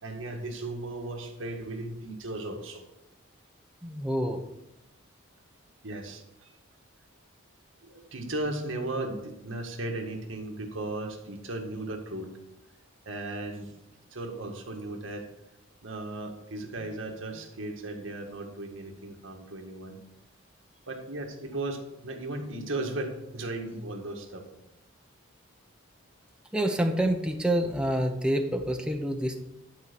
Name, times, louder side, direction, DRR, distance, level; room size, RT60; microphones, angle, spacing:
voice 1, 0.0-2.8 5.8-6.6 7.8-12.3 13.1-13.7 14.1-15.3 15.8-20.0 20.9-24.5, right 2 dB, 70° right, 2 dB, 1.8 m, -36 dB
voice 2, 3.8-4.4 26.5-29.4, right 1 dB, 5° right, 3 dB, 0.9 m, -27 dB
11.5 x 4.6 x 6.8 m, 0.87 s
head